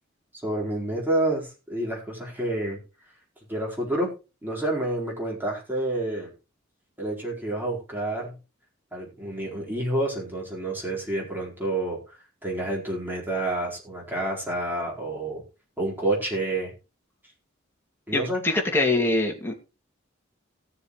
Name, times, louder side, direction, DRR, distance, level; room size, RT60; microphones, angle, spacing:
voice 1, 0.4-2.8 3.5-4.1 4.4-6.3 7.0-8.4 8.9-12.0 12.4-15.4 15.8-16.7 18.1-18.4, right 1 dB, 10° right, -3 dB, 4.4 m, -28 dB
voice 2, 18.1-19.7, left 2 dB, 10° left, 1 dB, 2.4 m, -24 dB
18.0 x 7.1 x 3.1 m, 0.30 s
head